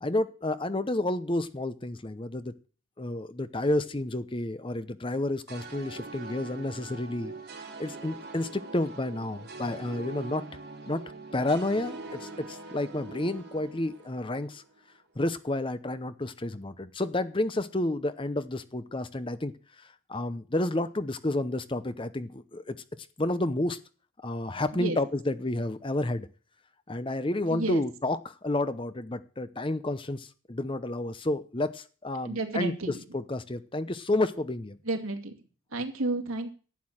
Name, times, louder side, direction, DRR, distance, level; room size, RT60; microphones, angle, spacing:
voice 1, 0.0-2.5 3.0-7.3 7.8-10.4 10.9-11.0 11.3-14.6 15.2-19.5 19.8-22.7 23.2-23.8 24.2-26.3 26.9-32.7 33.1-34.8, left 1 dB, 25° left, 13 dB, 0.7 m, -30 dB
sound 1, 5.5-14.8, right 3 dB, 50° right, 4.0 m, -43 dB
voice 2, 27.5-27.8 32.2-33.0 34.8-35.3 35.7-36.5, right 2 dB, 80° right, 5 dB, 2.4 m, -31 dB
11.5 x 8.5 x 7.4 m, 0.39 s
head